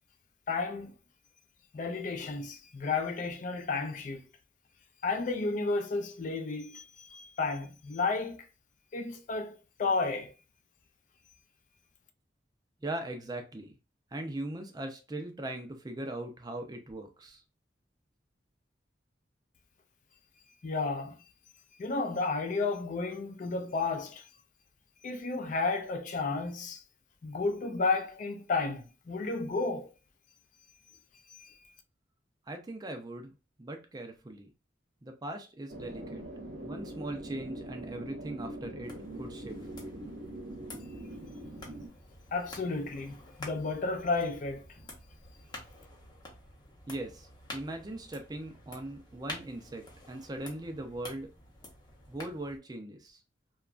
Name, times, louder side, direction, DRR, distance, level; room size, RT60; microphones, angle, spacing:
voice 1, 0.5-0.9 1.7-4.2 5.0-8.5 8.9-10.3 20.6-21.2 21.8-24.2 25.0-26.8 27.2-29.9 31.4-31.5 42.3-44.6, left 3 dB, 45° left, 0.4 m, -32 dB
voice 2, 12.8-13.7 14.1-17.4 32.5-33.3 33.6-34.5 35.0-36.3 36.6-39.6 46.9-51.3 52.1-53.2, right 1 dB, 20° right, 0.4 m, -40 dB
sound 1, 35.7-41.9, right 1 dB, 65° right, 0.6 m, -42 dB
sound 2, 38.8-52.6, left 1 dB, 25° left, 0.7 m, -49 dB
2.9 x 2.3 x 2.4 m
head